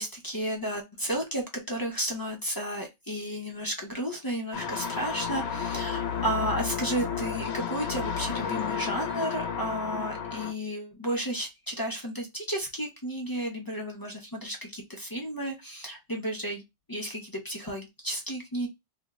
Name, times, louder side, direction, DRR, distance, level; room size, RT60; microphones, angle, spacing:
voice 1, 0.0-16.6 16.9-18.7, right 1 dB, 25° left, 0.5 m, -33 dB
sound 1, 4.5-10.5, left 6 dB, 70° left, 0.8 m, -32 dB
2.5 x 2.0 x 3.4 m
omnidirectional pair, 1.2 m